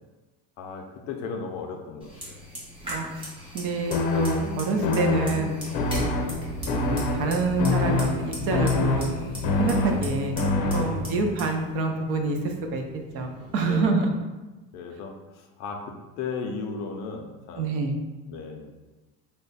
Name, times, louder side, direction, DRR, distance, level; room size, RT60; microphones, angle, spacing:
voice 1, 0.6-2.4 5.9-6.3 10.8-11.2 13.5-14.0 14.7-17.8 18.3-18.7, left 4 dB, 55° left, 3 dB, 0.5 m, -36 dB
Fire, 2.0-13.8, right 1 dB, 15° right, 0.8 m, -39 dB
voice 2, 2.8-3.3 3.5-5.5 6.7-9.1 9.6-10.4 10.7-12.8 13.1-14.1 17.6-17.9, right 3 dB, 45° right, 4 dB, 0.5 m, -27 dB
sound 1, 3.9-11.3, left 3 dB, 90° left, 0.7 m, -26 dB
3.3 x 2.1 x 3.9 m, 1.2 s
cardioid pair, 175°, 34 cm